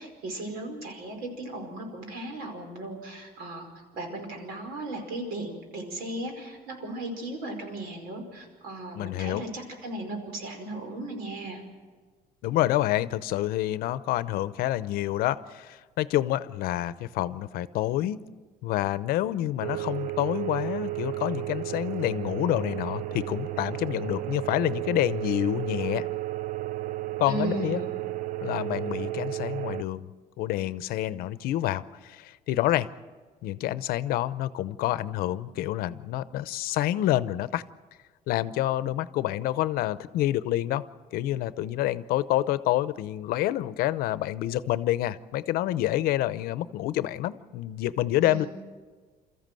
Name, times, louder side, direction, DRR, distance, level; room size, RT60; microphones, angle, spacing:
voice 1, 0.0-11.6 27.3-27.9 48.2-48.5, right 2 dB, 75° right, 4 dB, 5.1 m, -36 dB
voice 2, 8.9-9.4 12.4-18.2 18.6-26.1 27.2-27.8 28.4-30.1 30.4-32.9 33.4-37.6 38.3-40.9 41.1-48.4, left 14 dB, 70° left, 15 dB, 0.7 m, -28 dB
sound 1, 19.6-29.8, right 15 dB, 55° right, 0.6 m, -33 dB
28.5 x 14.5 x 7.7 m, 1.4 s
cardioid pair, 165°, 16 cm